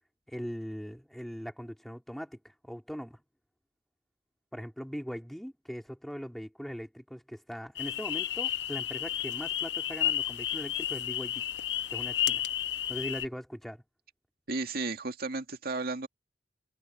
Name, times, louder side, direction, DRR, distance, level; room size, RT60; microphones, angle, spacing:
voice 1, 0.3-3.2 4.5-11.4 11.9-12.5 12.9-13.8, equal, ahead, 3.5 m, -40 dB
sound 1, 7.8-13.3, left 11 dB, 75° left, 0.8 m, -32 dB
voice 2, 14.5-16.1, right 3 dB, 60° right, 2.2 m, -33 dB
head